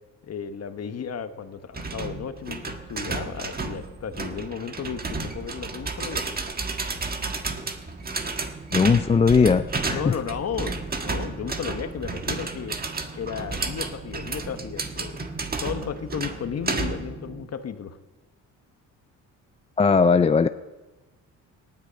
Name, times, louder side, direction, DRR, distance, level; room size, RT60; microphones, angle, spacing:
voice 1, 0.2-6.3 9.9-12.8 13.1-15.3 15.6-18.0, left 7 dB, 50° left, 9 dB, 1.2 m, -34 dB
sound 1, 1.7-17.2, right 3 dB, 30° right, 1.4 m, -32 dB
sound 2, 8.2-17.5, right 2 dB, ahead, 5.1 m, -43 dB
voice 2, 8.7-10.2 19.8-20.5, left 5 dB, 20° left, 11 dB, 0.4 m, -19 dB
18.0 x 9.6 x 5.2 m, 1.2 s
cardioid pair, 85°, 33 cm